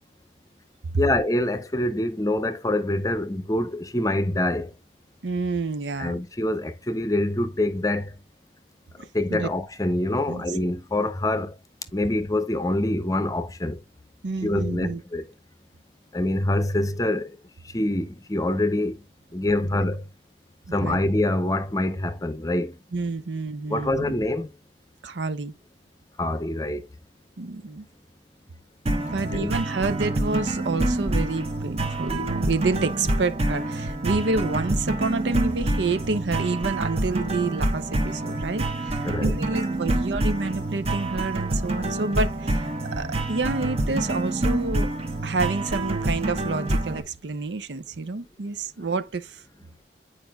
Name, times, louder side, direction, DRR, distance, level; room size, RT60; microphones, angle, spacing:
voice 1, 1.0-4.7 6.0-8.1 9.1-11.5 11.9-13.8 14.4-15.3 16.1-17.3 17.7-18.9 19.3-20.0 20.7-22.7 23.7-24.5 26.2-26.8 29.3-29.5 39.0-39.4, left 1 dB, 20° left, 0.7 m, -25 dB
voice 2, 5.2-6.2 9.0-9.5 10.3-10.4 14.2-15.0 19.7-19.9 20.7-21.0 22.9-24.1 25.0-25.5 27.4-27.9 29.0-44.9 45.2-49.4, right 3 dB, 75° right, 0.6 m, -29 dB
sound 1, 28.9-47.0, right 2 dB, 35° right, 1.0 m, -27 dB
9.1 x 4.9 x 2.3 m
head